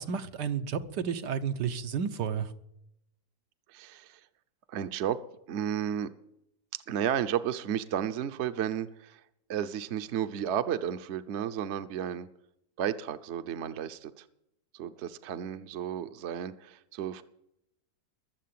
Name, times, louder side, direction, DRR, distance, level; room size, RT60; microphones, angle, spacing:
voice 1, 0.0-2.5, right 7 dB, 80° right, 8 dB, 1.6 m, -32 dB
voice 2, 3.7-4.2 4.7-5.2 5.5-6.1 6.7-9.2 9.5-12.3 12.8-14.3 14.7-17.2, right 9 dB, 50° right, 11 dB, 0.9 m, -33 dB
21.5 x 7.6 x 7.6 m, 0.79 s
omnidirectional pair, 1.8 m